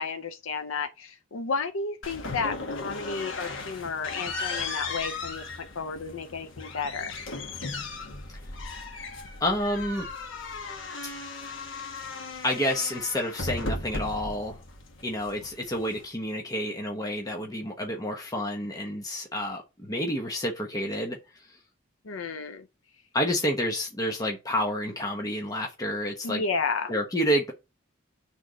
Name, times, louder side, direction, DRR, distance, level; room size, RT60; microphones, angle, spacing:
voice 1, 0.0-7.1 22.0-22.7 26.2-26.9, left 4 dB, 85° left, 0.6 m, -32 dB
sound 1, 2.0-16.1, left 3 dB, 65° left, 1.3 m, -37 dB
voice 2, 9.4-10.1 11.0-11.1 12.4-14.6 15.0-21.2 23.1-26.4 26.9-27.5, equal, 20° left, 1.0 m, -29 dB
6.5 x 3.5 x 5.0 m
head